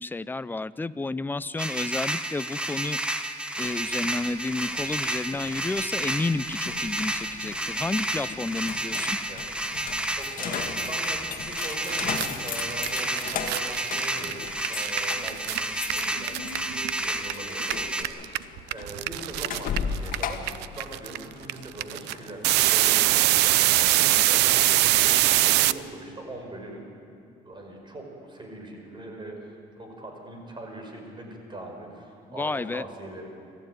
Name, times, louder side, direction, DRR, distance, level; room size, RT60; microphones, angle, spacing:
voice 1, 0.0-3.2 3.6-9.2 32.4-32.8, left 3 dB, 10° left, 15 dB, 0.5 m, -31 dB
sound 1, 1.6-18.0, right 1 dB, 5° right, 1.4 m, -31 dB
sound 2, 3.5-22.7, left 7 dB, 55° left, 1.7 m, -38 dB
voice 2, 10.2-26.9 27.4-33.3, right 1 dB, 30° right, 2 dB, 5.5 m, -41 dB
sound 3, 11.5-11.6 11.8-17.3 17.6-25.7, right 16 dB, 85° right, 0.6 m, -23 dB
26.5 x 14.5 x 9.2 m, 2.4 s
cardioid pair, 110°, 17 cm